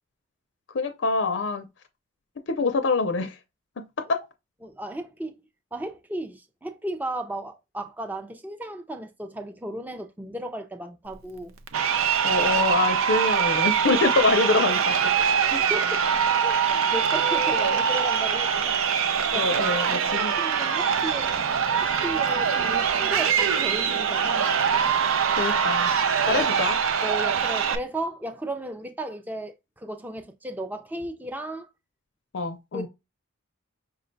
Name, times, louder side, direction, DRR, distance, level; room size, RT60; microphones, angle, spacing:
voice 1, 0.7-1.7 2.5-3.4 3.8-4.2 12.2-15.0 19.3-20.3 25.4-25.9 26.2-26.8 32.3-32.9, left 3 dB, 60° left, 0.5 m, -25 dB
voice 2, 4.6-5.4 5.7-11.5 15.4-16.0 16.4-18.8 19.3-21.4 21.8-24.6 26.2-26.4 27.0-31.7 32.7-32.9, right 1 dB, 10° right, 0.4 m, -35 dB
Crowd, 11.7-27.7, right 7 dB, 85° right, 0.5 m, -23 dB
5.7 x 2.2 x 3.9 m
head